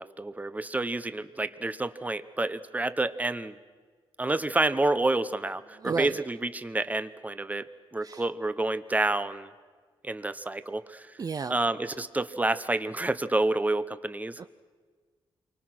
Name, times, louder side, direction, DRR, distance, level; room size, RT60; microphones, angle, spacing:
voice 1, 0.0-3.6 4.2-9.5 10.0-11.2 11.5-14.4, right 2 dB, 15° right, 12 dB, 1.0 m, -29 dB
voice 2, 5.8-6.1 8.0-8.2 11.2-11.5 14.4-14.5, right 5 dB, 40° right, 10 dB, 0.6 m, -32 dB
28.0 x 24.0 x 6.1 m, 1.5 s
cardioid pair, 90°, 10 cm